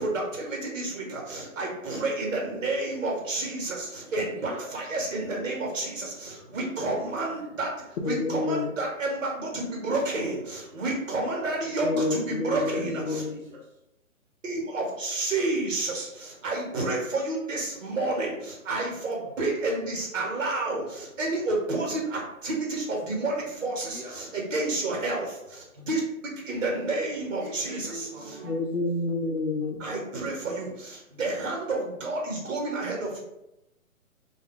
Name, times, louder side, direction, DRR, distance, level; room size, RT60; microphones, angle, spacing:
voice 1, 0.0-13.2 14.4-28.5 29.8-33.2, right 2 dB, 60° right, -1 dB, 1.1 m, -30 dB
voice 2, 4.4-4.7 6.6-7.1 7.4-7.6 11.1-11.5 12.5-13.8 23.8-24.4 27.4-28.7, left 1 dB, 35° right, -4 dB, 0.5 m, -43 dB
voice 3, 8.0-8.7 11.8-13.3 28.4-29.8, left 3 dB, 60° left, 5 dB, 0.5 m, -28 dB
2.3 x 2.2 x 3.4 m, 0.87 s
hypercardioid pair, 160°, 42 cm